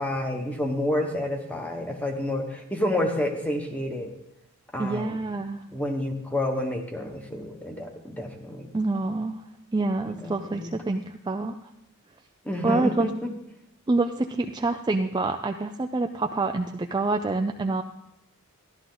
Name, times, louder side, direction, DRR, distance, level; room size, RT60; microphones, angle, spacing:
voice 1, 0.0-4.1 4.7-5.2 5.7-8.7 10.1-10.7 12.4-13.3, left 1 dB, 5° left, 3 dB, 1.2 m, -29 dB
voice 2, 4.8-5.6 8.7-9.4 9.7-11.6 12.6-13.1 13.9-17.8, right 3 dB, 20° right, 5 dB, 0.4 m, -26 dB
13.5 x 11.5 x 3.9 m, 0.83 s
head